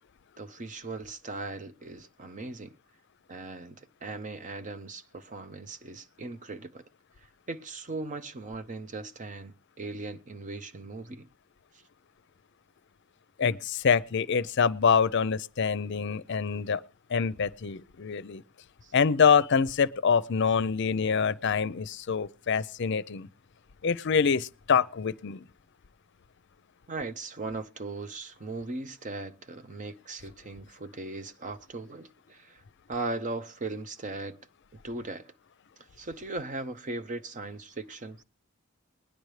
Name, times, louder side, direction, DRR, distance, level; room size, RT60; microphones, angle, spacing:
voice 1, 0.4-2.7 3.3-6.9 7.5-11.3 18.8-18.9 26.9-32.6 32.9-34.4 34.8-35.3 36.0-38.2, right 3 dB, 40° right, 0.7 m, -38 dB
voice 2, 13.4-16.8 17.1-18.4 18.9-23.3 23.8-25.4, left 6 dB, 60° left, 0.5 m, -25 dB
20.5 x 10.5 x 3.2 m
head